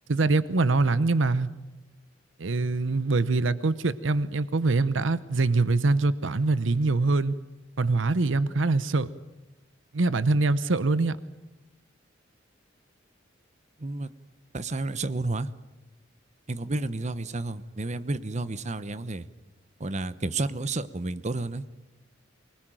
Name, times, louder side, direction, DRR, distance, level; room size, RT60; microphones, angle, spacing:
voice 1, 0.1-1.5 2.4-7.3 7.8-9.1 9.9-11.2, right 3 dB, 70° right, 16 dB, 0.8 m, -24 dB
voice 2, 14.5-15.5 16.5-19.3 19.8-21.6, right 2 dB, 35° right, 14 dB, 0.9 m, -31 dB
24.0 x 20.0 x 9.1 m, 1.0 s
head